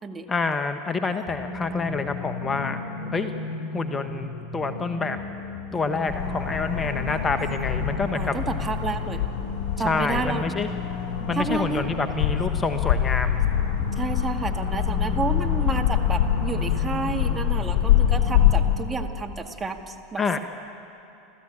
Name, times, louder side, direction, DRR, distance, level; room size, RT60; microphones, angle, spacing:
voice 1, 0.3-2.8 3.1-3.3 3.7-5.2 5.7-8.3 9.8-10.7 11.3-13.4 20.2-20.4, left 4 dB, 20° left, 8 dB, 1.2 m, -27 dB
sound 1, 1.3-18.9, left 2 dB, 35° left, 7.5 m, -35 dB
sound 2, 6.1-18.6, left 11 dB, 60° left, 5.4 m, -25 dB
voice 2, 8.1-9.2 9.8-10.5 11.3-11.8 14.0-20.4, right 4 dB, 20° right, 4 dB, 2.1 m, -30 dB
29.5 x 13.5 x 8.9 m, 2.9 s
hypercardioid pair, 80°, 0 cm